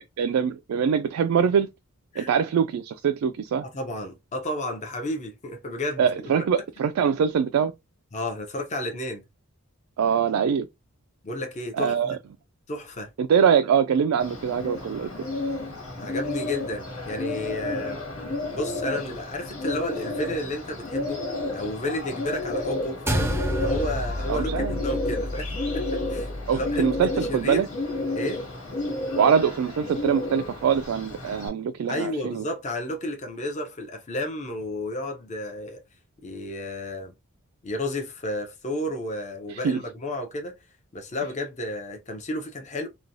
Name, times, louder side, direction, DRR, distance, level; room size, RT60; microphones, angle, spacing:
voice 1, 0.0-1.7 2.2-3.6 6.0-7.7 10.0-10.7 11.8-12.2 13.2-15.1 24.3-24.8 26.5-27.7 29.2-32.4 39.5-39.8, right 7 dB, 85° right, 0.3 m, -23 dB
voice 2, 3.7-6.5 8.1-9.2 11.2-12.2 12.7-13.1 16.0-18.0 18.5-21.2 21.5-23.3 23.6-27.6 28.1-28.5 31.9-35.8 36.2-37.1 37.6-40.5 40.9-42.9, left 1 dB, 35° left, 0.6 m, -32 dB
Bird, 14.2-31.5, left 2 dB, 90° left, 1.7 m, -32 dB
sound 1, 23.1-27.6, equal, 10° right, 0.4 m, -30 dB
3.0 x 2.2 x 2.6 m
head